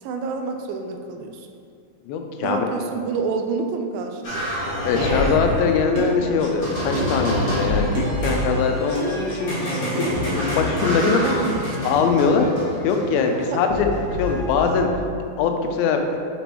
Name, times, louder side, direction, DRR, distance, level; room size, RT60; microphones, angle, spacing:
voice 1, 0.0-1.5 2.4-4.5 11.0-11.8 13.5-13.6, right 5 dB, 85° right, 4 dB, 2.3 m, -28 dB
voice 2, 2.1-2.6 4.8-9.8 10.3-11.2 11.8-12.5 12.8-14.9 15.4-16.2, left 5 dB, 90° left, 4 dB, 2.4 m, -22 dB
sound 1, 4.2-14.8, left 1 dB, 50° left, 1.3 m, -27 dB
sound 2, 5.0-5.1 6.0-6.2 7.0-7.3 7.9-8.2 9.0-9.1 10.0-10.3 11.0-11.1 11.9-12.1, right 2 dB, 65° right, 2.9 m, -29 dB
6.9 x 5.0 x 3.0 m, 2.3 s
omnidirectional pair, 4.2 m